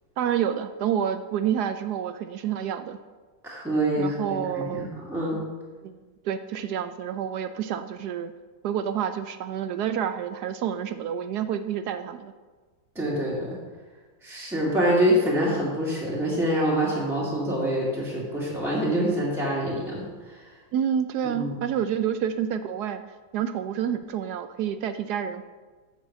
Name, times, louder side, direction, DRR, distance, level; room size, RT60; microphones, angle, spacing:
voice 1, 0.2-3.0 4.0-4.9 5.8-6.0 6.2-8.3 8.6-12.3 20.7-23.0 23.3-25.5, right 9 dB, 75° right, 10 dB, 1.0 m, -28 dB
voice 2, 3.4-5.4 13.0-13.6 14.2-20.4 21.2-21.5, equal, ahead, -7 dB, 2.1 m, -26 dB
7.6 x 7.4 x 7.2 m, 1.4 s
omnidirectional pair, 2.1 m